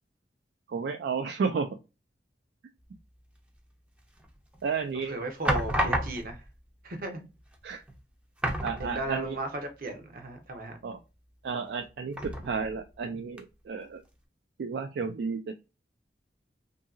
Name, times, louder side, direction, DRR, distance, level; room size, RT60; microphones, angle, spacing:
voice 1, 0.7-1.8 4.6-5.2 7.6-7.8 8.6-9.4 10.8-11.0 11.4-14.0 14.6-15.5, right 5 dB, 70° right, 0.3 m, -32 dB
sound 1, 4.2-4.7 5.4-6.5 7.5-7.6 7.9-8.0 8.4-9.4 9.7-9.8 12.1-12.8 13.4-13.5, right 1 dB, 5° right, 0.5 m, -31 dB
voice 2, 5.1-6.4 6.8-7.3 8.8-10.8, right 2 dB, 55° right, 0.7 m, -35 dB
2.7 x 2.7 x 2.3 m
head